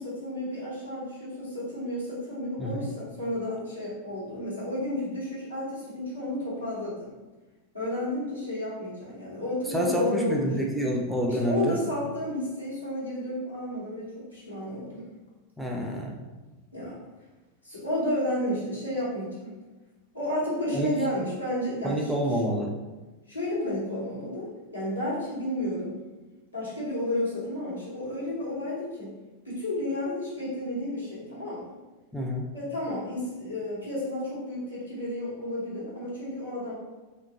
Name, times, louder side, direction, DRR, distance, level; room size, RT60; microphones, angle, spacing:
voice 1, 0.0-7.1 7.7-10.5 11.3-15.1 16.7-17.0 17.6-19.6 20.1-22.1 23.3-26.0 26.5-29.1 29.4-31.7 32.5-36.7, left 1 dB, 90° left, -9 dB, 1.0 m, -32 dB
voice 2, 9.7-11.8 15.6-16.3 20.7-20.9 21.8-22.7 32.1-32.5, equal, 5° right, -1 dB, 0.3 m, -28 dB
2.3 x 2.2 x 2.7 m, 1.2 s
figure-of-eight pair, 90°, 0 cm